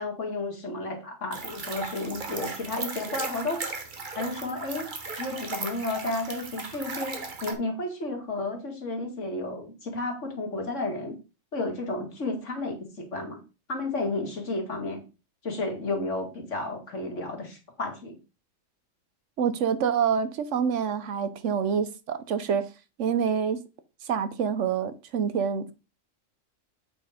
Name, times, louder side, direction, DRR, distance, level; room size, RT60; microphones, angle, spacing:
voice 1, 0.0-3.6 4.2-4.9 5.2-11.2 11.5-13.4 13.7-15.0 15.4-18.2, left 2 dB, 70° left, 2.4 m, -32 dB
sound 1, 1.3-7.5, right 3 dB, 40° right, 1.3 m, -36 dB
voice 2, 19.4-22.6 23.0-23.6 24.0-25.7, right 7 dB, 70° right, 1.1 m, -26 dB
8.5 x 4.4 x 4.9 m
omnidirectional pair, 1.3 m